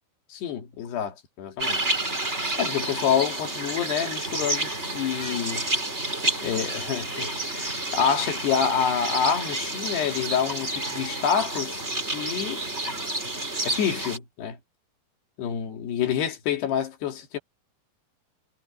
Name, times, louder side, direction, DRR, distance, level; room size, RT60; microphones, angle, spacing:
voice 1, 0.3-1.8 2.6-5.7 6.4-11.8 12.1-12.9 13.7-14.6 15.4-17.4, left 8 dB, 85° left, 4.6 m, -27 dB
sound 1, 1.6-14.2, right 2 dB, 15° right, 4.6 m, -30 dB
omnidirectional pair, 4.6 m